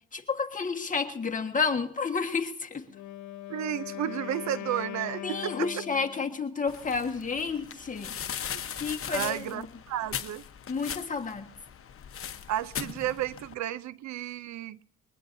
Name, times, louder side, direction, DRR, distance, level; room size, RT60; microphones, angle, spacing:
voice 1, 0.1-2.8 5.2-8.1 8.8-9.7 10.7-11.4, left 5 dB, 25° left, 3 dB, 1.5 m, -30 dB
Wind instrument woodwind instrument, 2.9-6.4, left 13 dB, 75° left, 0.9 m, -40 dB
voice 2, 3.5-5.7 8.5-8.6 9.1-10.4 12.5-14.8, right 12 dB, 65° right, 19 dB, 0.5 m, -32 dB
sound 1, 6.7-13.5, left 8 dB, 45° left, 1.0 m, -39 dB
21.0 x 20.5 x 2.7 m, 0.63 s
cardioid pair, 90°, 30 cm